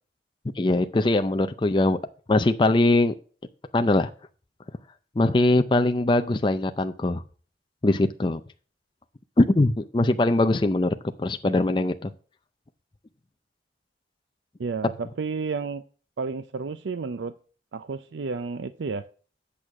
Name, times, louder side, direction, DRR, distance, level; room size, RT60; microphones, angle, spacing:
voice 1, 0.5-2.0 2.3-3.1 3.7-4.1 5.2-7.2 7.8-8.4 9.4-12.1, left 2 dB, 25° left, 8 dB, 0.4 m, -21 dB
voice 2, 14.6-15.8 16.2-17.3 17.7-19.0, right 4 dB, 90° right, 12 dB, 0.5 m, -31 dB
8.7 x 6.3 x 5.9 m, 0.40 s
head